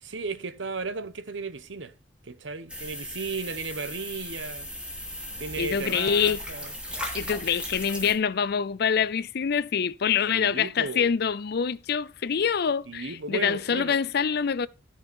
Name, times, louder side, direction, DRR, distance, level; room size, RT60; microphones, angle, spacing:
voice 1, 0.0-1.9 2.2-4.7 5.4-6.7 10.3-11.1 12.8-14.0, right 4 dB, 80° right, 0.9 m, -35 dB
sound 1, 2.7-8.1, equal, 5° right, 2.7 m, -37 dB
voice 2, 5.6-6.4 7.1-14.7, left 7 dB, 60° left, 0.5 m, -25 dB
13.5 x 5.7 x 4.5 m
head